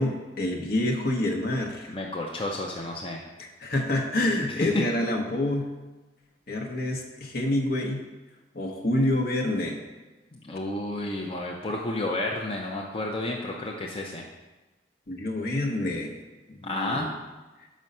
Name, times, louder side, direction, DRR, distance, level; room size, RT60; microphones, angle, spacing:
voice 1, 0.0-2.0 3.4-5.8 6.5-8.0 8.5-9.8 15.1-16.1 16.5-17.1, left 1 dB, 55° left, 2 dB, 1.1 m, -27 dB
voice 2, 1.9-3.2 4.7-4.8 10.3-14.3 16.6-17.1, left 2 dB, 30° left, -1 dB, 0.6 m, -31 dB
6.2 x 5.3 x 5.5 m, 1.1 s
head